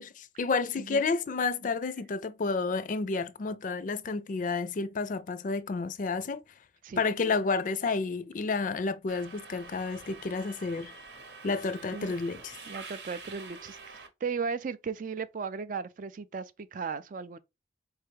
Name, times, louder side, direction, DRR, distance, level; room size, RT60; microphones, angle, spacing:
voice 1, 0.0-6.4 7.0-10.9 11.4-12.6, left 4 dB, 45° left, 0.4 m, -30 dB
Subway metro underground, 9.1-14.1, right 4 dB, 80° right, 1.0 m, -47 dB
voice 2, 12.7-17.4, right 5 dB, 50° right, 0.4 m, -36 dB
4.5 x 3.3 x 3.2 m
head